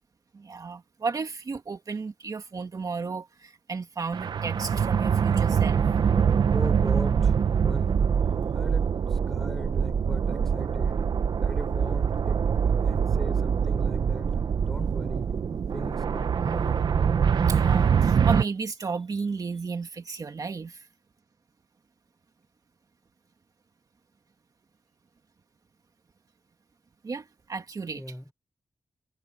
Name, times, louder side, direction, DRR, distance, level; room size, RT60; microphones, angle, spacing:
voice 1, 0.3-5.8 16.4-16.7 17.4-20.9 27.0-28.0, right 4 dB, 50° right, 2.1 m, -33 dB
sound 1, 4.1-18.4, right 7 dB, 70° right, 0.9 m, -24 dB
voice 2, 6.5-8.0 8.5-11.1 11.4-15.4 15.7-16.9 27.9-28.3, equal, 5° left, 4.6 m, -39 dB
wide cardioid pair, 110°, 8 cm